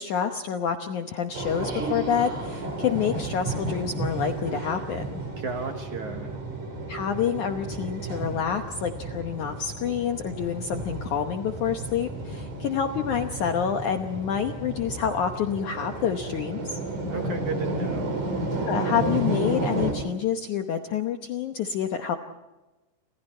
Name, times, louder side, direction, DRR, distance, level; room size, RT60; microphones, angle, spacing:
voice 1, 0.0-5.2 6.9-16.8 18.6-22.2, left 8 dB, 75° left, 5 dB, 1.8 m, -28 dB
sound 1, 1.3-19.9, right 2 dB, 45° right, 5.3 m, -32 dB
voice 2, 5.4-6.3 17.1-18.1, right 4 dB, 60° right, 4 dB, 2.2 m, -33 dB
30.0 x 27.0 x 4.5 m, 1.1 s
omnidirectional pair, 5.0 m